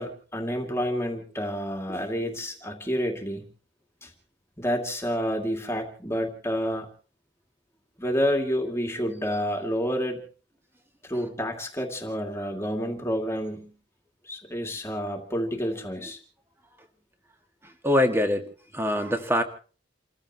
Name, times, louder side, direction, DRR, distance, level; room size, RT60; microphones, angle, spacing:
voice 1, 0.0-3.4 4.0-4.1 4.6-6.9 8.0-10.2 11.0-13.7 14.3-16.2, equal, 15° left, 3 dB, 2.4 m, -29 dB
voice 2, 17.6-19.4, left 1 dB, 15° right, 5 dB, 2.1 m, -24 dB
29.5 x 15.5 x 3.0 m, 0.39 s
head